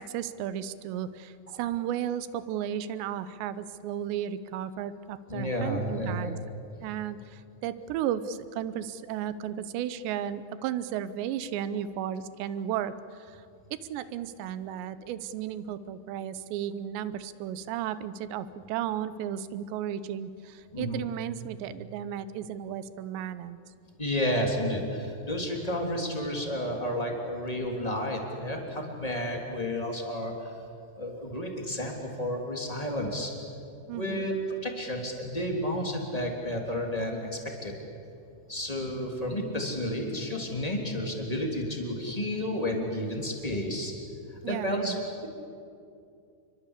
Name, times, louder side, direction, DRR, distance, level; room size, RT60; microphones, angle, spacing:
voice 1, 0.0-6.4 6.8-13.4 13.7-23.6 33.9-34.3 44.4-45.0, right 10 dB, 80° right, 14 dB, 2.9 m, -34 dB
voice 2, 5.3-6.4 20.7-21.1 24.0-30.5 31.0-33.3 33.9-34.3 34.6-37.7 38.5-43.9 44.3-44.9, left 1 dB, 10° left, 1 dB, 2.4 m, -31 dB
28.0 x 22.5 x 8.2 m, 2.5 s
omnidirectional pair, 5.3 m